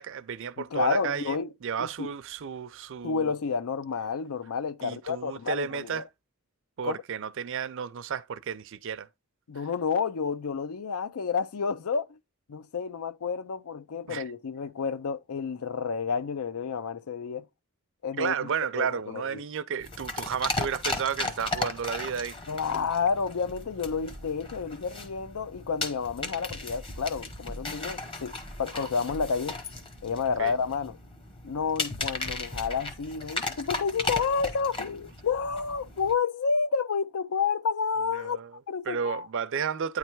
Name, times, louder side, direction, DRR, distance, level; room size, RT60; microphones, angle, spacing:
voice 1, 0.0-3.3 4.8-6.1 6.8-9.1 14.1-14.2 18.2-22.3 30.4-30.5 38.1-38.5 38.9-40.0, right 7 dB, 60° right, 0.5 m, -32 dB
voice 2, 0.6-1.5 1.8-2.1 3.0-6.0 6.8-7.0 9.5-12.2 12.5-17.4 18.0-18.5 18.7-19.4 22.5-28.3 28.6-29.6 30.0-31.0 31.4-38.4 38.7-39.3, left 5 dB, 80° left, 0.5 m, -30 dB
sound 1, 19.8-36.1, left 2 dB, 25° left, 0.9 m, -36 dB
9.2 x 3.3 x 4.5 m
head